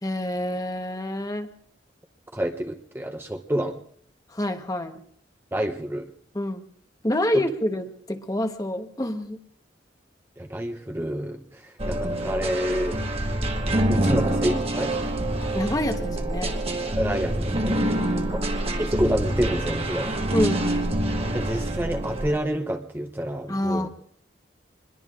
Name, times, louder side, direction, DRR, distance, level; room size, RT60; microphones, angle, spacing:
voice 1, 0.0-1.5 4.3-5.0 6.3-6.6 7.0-9.4 15.5-16.6 17.8-18.4 20.3-20.7 23.5-23.9, left 1 dB, 20° left, 6 dB, 1.1 m, -27 dB
voice 2, 2.3-3.8 5.5-6.1 7.3-7.4 10.4-13.0 13.9-15.1 16.9-17.8 18.3-18.4 18.8-20.2 21.3-23.9, equal, 10° right, 5 dB, 0.7 m, -28 dB
sound 1, 11.8-22.4, right 1 dB, 35° right, 1.2 m, -26 dB
25.5 x 21.5 x 2.5 m, 0.63 s
head